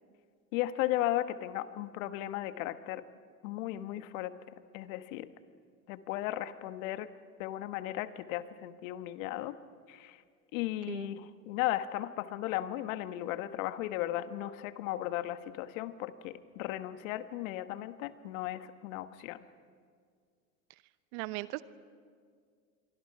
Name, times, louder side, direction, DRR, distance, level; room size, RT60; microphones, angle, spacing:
voice 1, 0.5-3.0 3.4-4.3 4.7-5.3 5.9-7.1 7.4-9.6 9.9-10.2 10.5-19.5, left 14 dB, 60° left, 12 dB, 1.3 m, -36 dB
voice 2, 21.1-21.6, right 21 dB, 55° right, 16 dB, 1.0 m, -37 dB
27.5 x 23.5 x 5.8 m, 2.1 s
hypercardioid pair, 95°, 45 cm